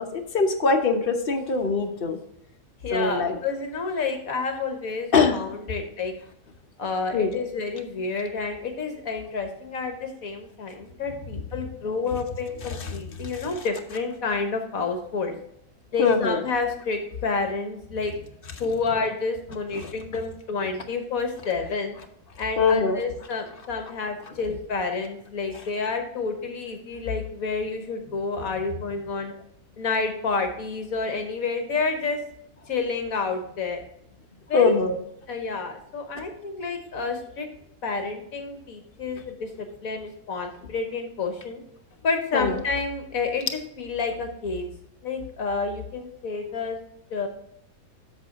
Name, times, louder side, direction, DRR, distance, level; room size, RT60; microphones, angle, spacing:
voice 1, 0.0-2.2 2.9-3.4 5.1-5.4 7.1-7.3 12.8-12.9 16.0-16.4 19.8-19.9 22.6-23.0 34.5-34.9 42.3-42.6, left 4 dB, 40° left, 5 dB, 1.0 m, -22 dB
voice 2, 2.8-6.1 6.8-15.3 15.9-18.1 18.6-22.0 22.4-29.3 29.8-32.2 32.7-33.8 34.5-34.8 35.3-37.5 37.8-41.6 42.0-44.7 45.0-46.8 47.1-47.3, left 4 dB, 65° left, 5 dB, 1.4 m, -29 dB
8.1 x 6.6 x 3.7 m, 0.74 s
omnidirectional pair, 1.7 m